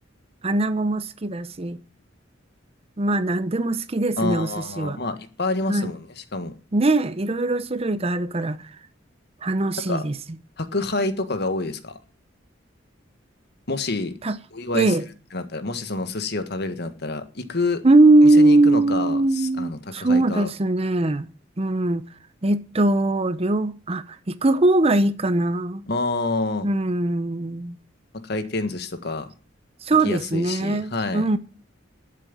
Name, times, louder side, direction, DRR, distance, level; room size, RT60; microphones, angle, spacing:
voice 1, 0.4-1.8 3.0-5.0 5.7-5.9 6.7-8.7 9.4-10.1 14.2-14.4 14.7-15.0 17.8-21.3 21.6-22.0 22.4-25.9 26.6-27.8 29.8-31.4, right 2 dB, 30° right, 0.7 m, -21 dB
voice 2, 4.2-6.5 9.9-10.0 10.6-12.0 13.7-14.1 14.5-15.0 15.3-17.8 18.2-20.5 25.9-26.7 28.1-29.3 30.0-31.2, left 3 dB, 55° left, 1.6 m, -28 dB
12.0 x 7.6 x 9.1 m
head